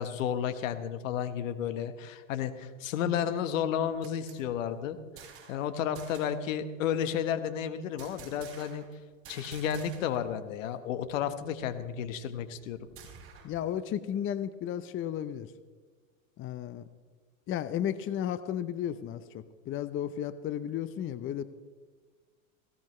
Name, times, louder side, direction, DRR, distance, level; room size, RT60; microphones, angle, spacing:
voice 1, 0.0-8.8 9.3-12.8, left 9 dB, 70° left, 10 dB, 1.4 m, -32 dB
sound 1, 3.7-5.7 5.9-6.4 8.0-8.9 9.2-10.3 10.6-10.7 11.0-13.6, right 7 dB, 35° right, 5.2 m, -51 dB
voice 2, 13.4-15.5 16.4-16.8 17.5-21.4, left 10 dB, 30° left, 13 dB, 0.7 m, -33 dB
18.5 x 16.0 x 3.2 m, 1.4 s
hypercardioid pair, 95°, 40 cm